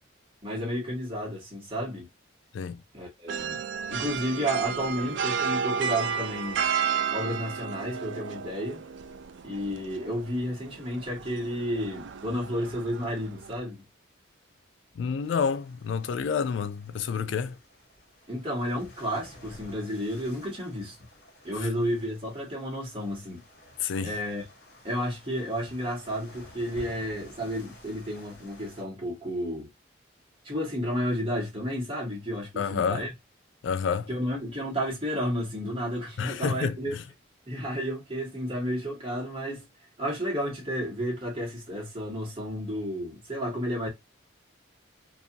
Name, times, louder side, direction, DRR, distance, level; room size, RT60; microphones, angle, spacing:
voice 1, 0.4-2.1 2.9-3.6 3.9-6.6 7.1-8.8 9.4-13.8 18.3-20.9 21.4-23.4 24.0-24.4 24.8-29.7 30.4-33.1 34.1-36.9 37.5-39.6 40.0-43.9, equal, 25° right, 1.2 m, -32 dB
sound 1, 3.3-13.6, right 7 dB, 70° right, 0.3 m, -33 dB
voice 2, 15.0-17.6 21.6-21.7 23.8-24.2 32.6-33.0 33.6-34.1 36.2-37.0, left 6 dB, 70° left, 0.3 m, -29 dB
sound 2, 15.2-28.8, left 1 dB, 50° left, 1.1 m, -52 dB
2.5 x 2.4 x 2.7 m
head